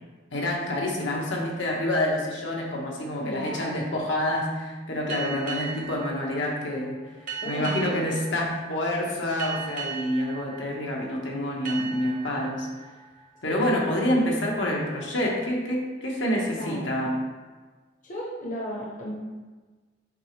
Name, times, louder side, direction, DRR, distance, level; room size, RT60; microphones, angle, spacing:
voice 1, 0.3-7.0 7.4-12.7 13.4-17.1, left 1 dB, 75° left, -2 dB, 1.4 m, -27 dB
voice 2, 3.2-3.8 7.4-7.9 13.5-13.9 16.5-16.9 18.0-19.2, equal, 45° left, -3 dB, 1.0 m, -35 dB
sound 1, 5.1-14.4, right 6 dB, 40° right, 1.0 m, -39 dB
7.5 x 4.9 x 3.3 m, 1.3 s
head